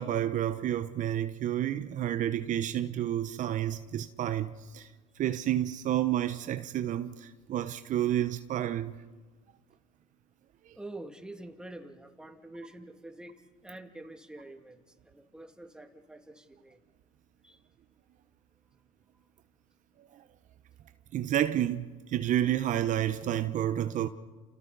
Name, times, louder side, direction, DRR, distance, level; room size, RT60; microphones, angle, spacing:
voice 1, 0.0-9.0 10.7-10.8 20.0-20.2 21.1-24.1, right 11 dB, 50° right, 1.0 m, -30 dB
voice 2, 10.7-16.8 17.4-17.6, right 1 dB, 5° right, 2.5 m, -47 dB
29.5 x 29.5 x 4.1 m
hypercardioid pair, 80°, 16 cm